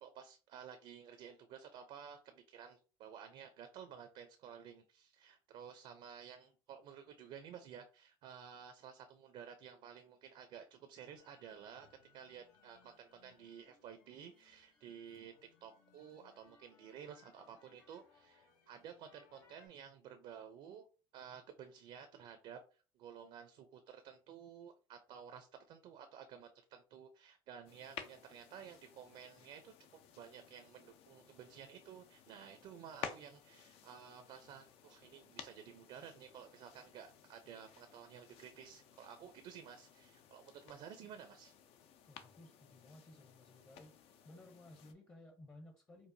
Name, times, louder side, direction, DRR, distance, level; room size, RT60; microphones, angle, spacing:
voice 1, 0.0-20.9 21.1-22.6 22.9-41.5, right 8 dB, 60° right, 0.5 m, -53 dB
sound 1, 11.2-19.7, left 5 dB, 85° left, 1.3 m, -69 dB
sound 2, 27.6-44.9, left 8 dB, 65° left, 0.6 m, -55 dB
voice 2, 42.1-44.0 44.2-46.1, left 1 dB, 25° left, 0.8 m, -57 dB
4.6 x 2.4 x 2.6 m
supercardioid pair, 95°, 11 cm